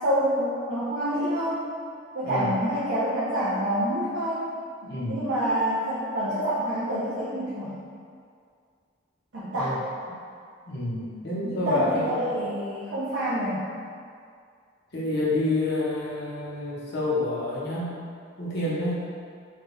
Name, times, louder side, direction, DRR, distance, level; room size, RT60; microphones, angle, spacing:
voice 1, 0.0-1.7 2.1-4.5 5.1-7.8 9.3-9.8 11.4-13.6, equal, 65° right, -10 dB, 0.6 m, -27 dB
voice 2, 2.2-2.6 4.8-5.3 9.5-9.8 10.6-12.3 14.9-17.9 18.4-19.0, left 2 dB, 50° left, -7 dB, 0.7 m, -28 dB
3.3 x 2.2 x 3.0 m, 2.2 s
head